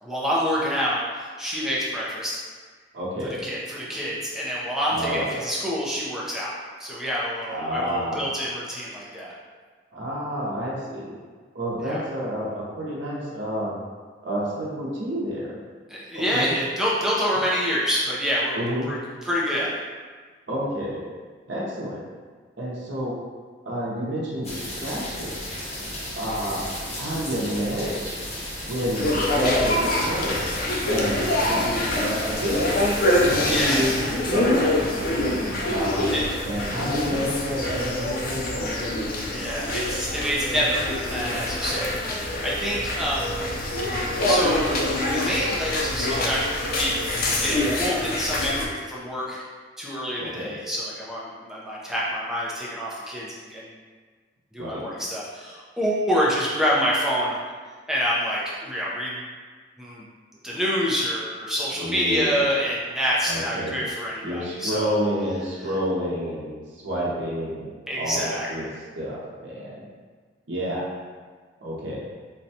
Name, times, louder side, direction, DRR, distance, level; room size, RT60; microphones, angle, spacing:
voice 1, 0.0-2.4 3.4-6.5 6.8-9.3 11.8-12.0 15.9-19.0 19.2-19.8 33.5-34.1 36.1-36.2 36.6-36.7 39.3-43.9 44.2-49.4 49.8-53.7 54.5-57.4 57.9-59.2 59.8-60.0 60.4-64.9 67.9-68.7, equal, 5° right, -7 dB, 0.5 m, -27 dB
voice 2, 2.9-3.4 4.9-5.4 7.5-8.3 9.9-11.2 11.5-13.7 14.2-15.6 16.1-16.5 18.5-18.9 20.5-21.0 21.5-22.1 22.6-23.1 23.6-25.4 26.2-26.6 27.0-28.2 28.7-30.4 30.8-31.2 31.5-32.8 33.1-35.3 35.7-36.1 36.4-38.9 50.2-50.5 54.6-54.8 61.8-62.5 63.2-63.8 64.2-66.6 66.8-68.7 68.9-69.9 70.5-70.8 71.6-72.0, equal, 85° right, -6 dB, 0.8 m, -29 dB
sound 1, 24.4-34.0, left 1 dB, 35° left, 0.9 m, -34 dB
sound 2, 29.0-48.7, left 1 dB, 50° left, 0.4 m, -25 dB
4.0 x 2.2 x 2.7 m, 1.5 s
head